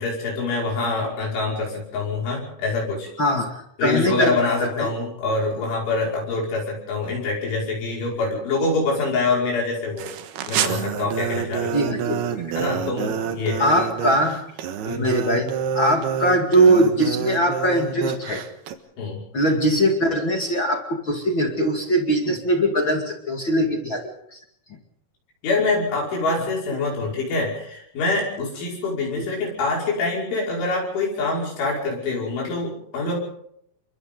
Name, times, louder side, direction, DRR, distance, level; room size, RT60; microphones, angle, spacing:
voice 1, 0.0-3.1 3.8-10.1 10.5-11.7 12.6-13.7 14.8-15.1 19.0-19.2 25.4-33.2, left 3 dB, 65° left, -3 dB, 8.1 m, -25 dB
voice 2, 3.2-4.9 11.7-12.4 13.6-14.4 14.9-18.4 19.3-24.4 29.2-29.3, right 1 dB, 45° left, 2 dB, 1.5 m, -21 dB
sound 1, 10.0-18.7, right 8 dB, 65° right, 2.9 m, -28 dB
29.5 x 24.0 x 4.0 m, 0.71 s
omnidirectional pair, 5.9 m